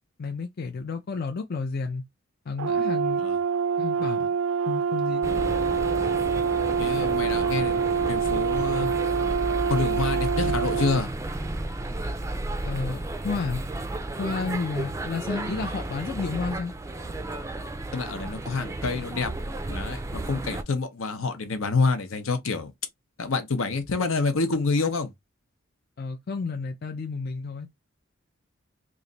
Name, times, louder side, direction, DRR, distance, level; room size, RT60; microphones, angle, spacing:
voice 1, 0.2-2.0 2.5-3.3 3.8-4.3 4.7-5.4 12.6-13.6 14.2-16.7 26.0-27.7, left 4 dB, 50° left, 0.4 m, -31 dB
Brass instrument, 2.6-11.0, right 6 dB, 85° right, 0.4 m, -26 dB
sound 1, 5.2-20.6, right 2 dB, 15° right, 0.4 m, -33 dB
voice 2, 6.8-7.8 8.1-8.9 9.7-11.1 15.3-15.7 17.9-19.3 19.7-22.7 23.2-25.1, left 4 dB, 80° left, 0.8 m, -27 dB
3.1 x 2.5 x 3.8 m
head